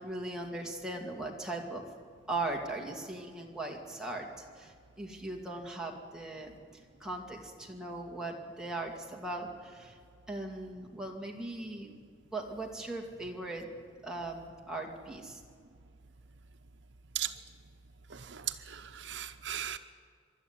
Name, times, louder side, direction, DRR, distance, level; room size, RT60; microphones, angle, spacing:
voice 1, 0.0-1.8 2.3-6.5 7.0-10.0 10.3-11.9 12.3-13.7 14.0-15.4, right 2 dB, 5° right, 2.4 m, -39 dB
voice 2, 18.1-19.8, right 11 dB, 75° right, 0.8 m, -37 dB
24.5 x 12.0 x 9.9 m
head